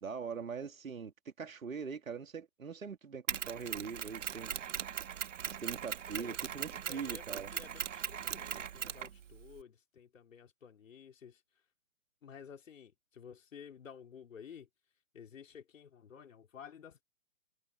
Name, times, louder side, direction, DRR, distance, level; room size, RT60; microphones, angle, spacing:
voice 1, 0.0-4.5 5.6-7.5, right 6 dB, 90° right, 3.3 m, -42 dB
Mechanisms, 3.3-9.6, right 9 dB, 65° right, 1.8 m, -39 dB
voice 2, 6.7-11.4 12.2-14.7 15.1-17.0, left 7 dB, 75° left, 3.8 m, -53 dB
hypercardioid pair, 145°, 39 cm